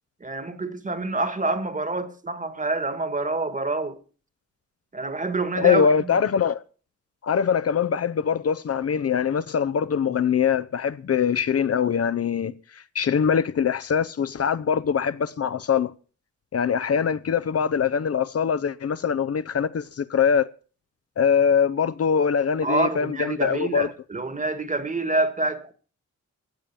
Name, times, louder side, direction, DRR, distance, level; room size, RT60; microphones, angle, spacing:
voice 1, 0.2-4.0 4.9-6.2 22.6-25.7, right 2 dB, 25° right, 1.6 m, -27 dB
voice 2, 5.6-6.6 7.2-15.9 16.5-20.5 21.2-23.9, left 7 dB, 55° left, 0.7 m, -23 dB
15.5 x 9.0 x 7.0 m
wide cardioid pair, 125°, 29 cm